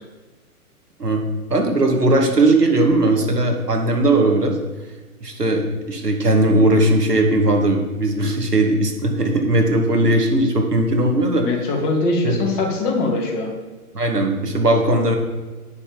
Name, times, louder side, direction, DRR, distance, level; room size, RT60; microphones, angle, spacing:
voice 1, 1.5-4.6 5.2-11.5 12.2-12.4 13.9-15.2, right 2 dB, 85° right, 2 dB, 2.3 m, -18 dB
voice 2, 11.4-13.5, left 3 dB, 30° left, -1 dB, 2.8 m, -22 dB
10.0 x 6.9 x 5.4 m, 1.3 s
figure-of-eight pair, 125°, 46 cm